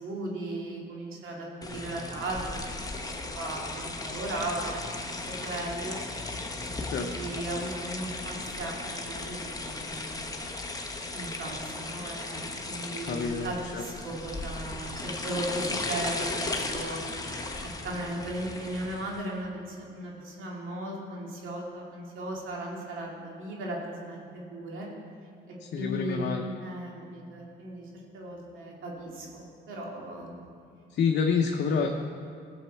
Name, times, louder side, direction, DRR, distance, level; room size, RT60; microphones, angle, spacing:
voice 1, 0.0-2.9 3.3-6.0 6.6-10.2 11.1-17.0 17.8-24.9 25.5-27.8 28.1-30.3, right 1 dB, 85° right, -2 dB, 2.3 m, -37 dB
sound 1, 1.6-19.3, left 2 dB, 20° left, 1.1 m, -36 dB
voice 2, 6.8-7.3 13.0-13.8 25.6-26.5 30.9-31.9, left 5 dB, 60° left, 3 dB, 0.8 m, -28 dB
16.0 x 7.2 x 4.4 m, 2.2 s
cardioid pair, 90°, 20 cm